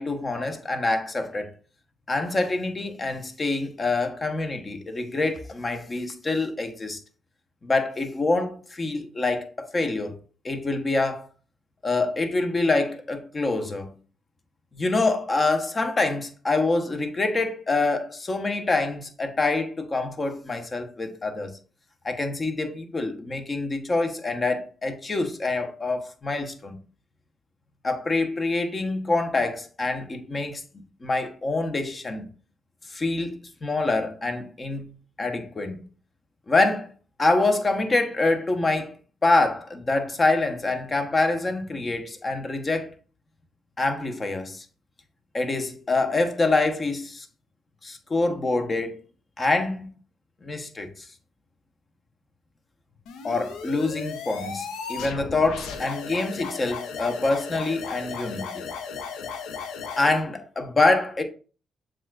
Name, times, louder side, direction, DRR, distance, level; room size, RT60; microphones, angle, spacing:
voice 1, 0.0-1.5 2.1-7.0 7.6-10.2 10.4-11.3 11.8-13.9 14.7-21.6 22.0-26.8 27.8-32.2 32.9-34.9 35.2-35.8 36.5-36.9 37.2-38.9 39.2-42.9 43.8-44.7 45.3-47.3 47.8-49.0 49.4-49.9 50.4-51.1 53.2-58.6 60.0-61.2, left 3 dB, 35° left, 0.9 m, -26 dB
sound 1, 53.1-60.2, left 5 dB, 80° left, 0.6 m, -35 dB
7.2 x 2.5 x 2.4 m
hypercardioid pair, 50°, 0 cm